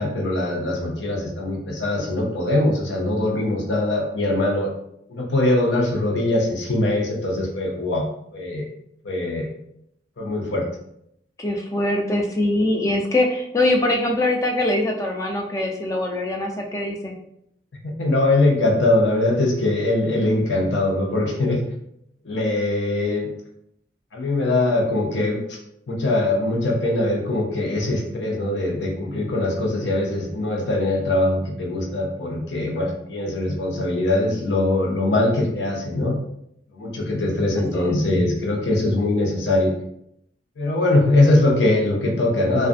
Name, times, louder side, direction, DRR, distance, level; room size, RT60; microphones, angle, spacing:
voice 1, 0.0-4.7 5.1-8.1 8.3-8.7 9.0-9.5 10.2-10.7 18.0-21.6 22.2-23.3 24.1-25.6 25.9-36.2 36.7-39.7 40.6-42.7, left 2 dB, 75° left, 0 dB, 0.6 m, -22 dB
voice 2, 11.4-17.2 37.7-37.9, left 1 dB, 20° left, 2 dB, 0.3 m, -23 dB
2.4 x 2.3 x 2.4 m, 0.74 s
head